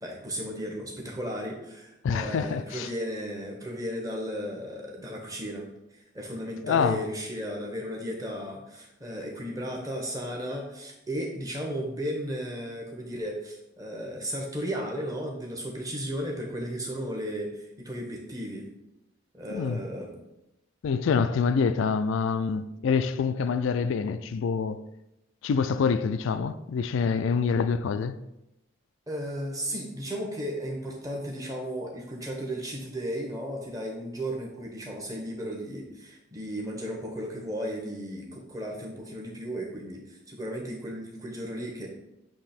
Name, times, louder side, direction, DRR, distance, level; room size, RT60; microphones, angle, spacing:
voice 1, 0.0-18.7 19.3-20.2 29.1-41.9, equal, 15° right, 1.0 m, -35 dB
voice 2, 2.0-2.9 6.6-7.0 19.5-19.8 20.8-24.8 25.4-28.2, left 5 dB, 65° left, 0.3 m, -26 dB
7.4 x 3.0 x 4.3 m
head